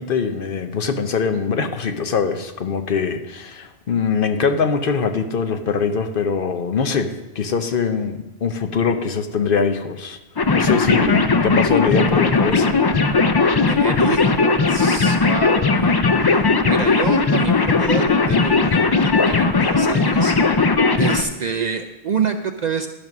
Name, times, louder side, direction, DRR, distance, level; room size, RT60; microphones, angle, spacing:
voice 1, 0.0-7.1 7.4-10.2 10.5-12.8, left 5 dB, 60° left, 7 dB, 0.9 m, -22 dB
sound 1, 10.4-21.2, left 4 dB, 40° left, 0.3 m, -17 dB
voice 2, 13.7-15.9 16.2-20.7 21.0-22.9, right 5 dB, 55° right, 5 dB, 0.5 m, -27 dB
12.0 x 5.3 x 6.0 m, 1.0 s
omnidirectional pair, 1.1 m